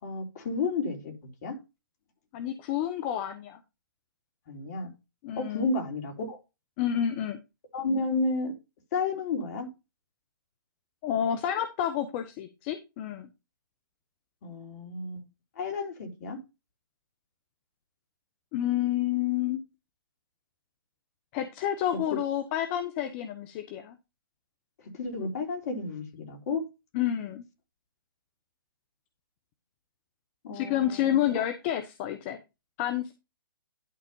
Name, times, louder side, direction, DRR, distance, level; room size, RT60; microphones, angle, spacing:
voice 1, 0.0-1.1 1.4-1.6 4.5-4.9 5.4-6.4 7.7-8.5 8.9-9.7 14.4-15.2 15.6-16.4 22.1-22.2 24.8-26.6 30.4-31.4, left 3 dB, 45° left, 3 dB, 3.4 m, -32 dB
voice 2, 2.3-3.6 5.2-5.7 6.8-7.4 11.0-13.3 18.5-19.6 21.3-24.0 26.9-27.4 30.5-32.4 32.8-33.1, left 11 dB, 30° left, 9 dB, 1.0 m, -29 dB
11.5 x 4.2 x 5.4 m, 0.25 s
hypercardioid pair, 135°, 12 cm